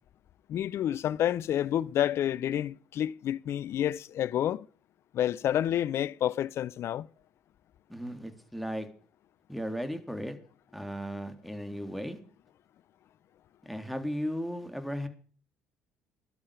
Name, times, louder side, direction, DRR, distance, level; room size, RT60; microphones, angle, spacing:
voice 1, 0.5-4.7 5.1-7.1, left 11 dB, 55° left, 0.7 m, -29 dB
voice 2, 7.9-8.9 9.5-10.4 10.7-12.2 13.6-15.1, equal, ahead, 3.5 m, -36 dB
17.5 x 12.0 x 5.1 m
hypercardioid pair, 55°, 5 cm